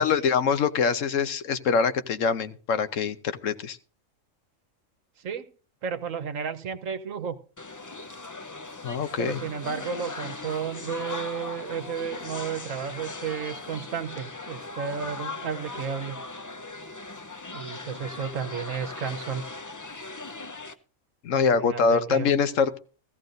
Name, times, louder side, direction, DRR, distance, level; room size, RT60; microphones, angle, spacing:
voice 1, 0.0-3.8 8.8-9.4 21.2-22.8, left 5 dB, 70° left, 11 dB, 1.2 m, -24 dB
voice 2, 5.8-7.4 9.2-16.1 17.5-19.4 21.4-22.3, right 7 dB, 75° right, 9 dB, 1.3 m, -33 dB
sound 1, 7.6-20.7, left 3 dB, 30° left, 0.3 m, -38 dB
16.0 x 14.5 x 2.6 m, 0.38 s
omnidirectional pair, 1.4 m